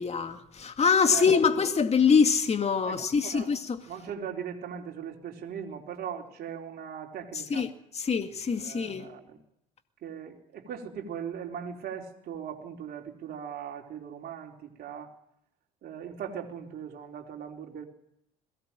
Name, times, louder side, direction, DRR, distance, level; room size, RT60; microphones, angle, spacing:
voice 1, 0.0-3.8 7.5-9.1, left 6 dB, 35° left, 2.2 m, -24 dB
voice 2, 1.1-1.5 2.8-3.5 3.9-7.6 8.5-9.4 10.0-15.1 15.8-17.9, right 8 dB, 55° right, 4.2 m, -39 dB
22.0 x 17.5 x 8.9 m
hypercardioid pair, 65°, 20 cm